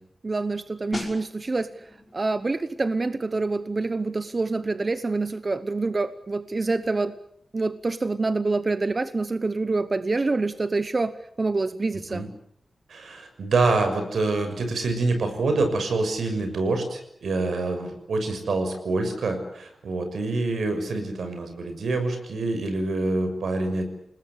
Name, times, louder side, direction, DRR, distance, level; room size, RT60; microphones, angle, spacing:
voice 1, 0.2-7.2 7.5-12.2, right 3 dB, 30° right, 12 dB, 1.0 m, -26 dB
sound 1, 0.9-11.4 11.7-12.0, left 1 dB, 10° left, 5.9 m, -44 dB
voice 2, 12.9-23.8, right 3 dB, 80° right, 7 dB, 6.5 m, -26 dB
29.5 x 19.5 x 8.4 m, 0.71 s
wide cardioid pair, 180°, 0 cm